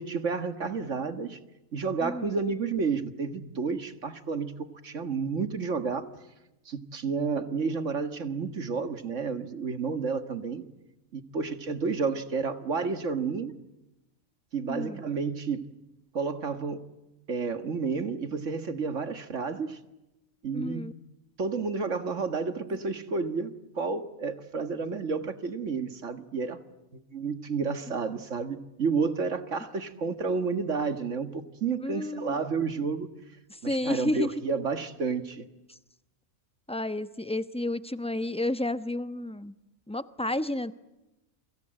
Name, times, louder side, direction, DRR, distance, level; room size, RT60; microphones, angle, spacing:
voice 1, 0.0-1.4 1.7-6.1 6.7-10.6 11.1-13.5 14.5-15.6 16.1-16.9 17.3-19.8 20.4-20.9 21.4-26.6 26.9-33.1 33.6-35.5, right 5 dB, 65° right, 11 dB, 2.0 m, -31 dB
voice 2, 2.0-2.4 14.7-15.0 20.5-20.9 27.9-28.0 31.8-32.4 33.5-34.3 36.7-39.5 39.9-40.7, left 1 dB, 5° left, 13 dB, 0.9 m, -31 dB
29.0 x 25.5 x 7.7 m, 0.97 s
omnidirectional pair, 1.4 m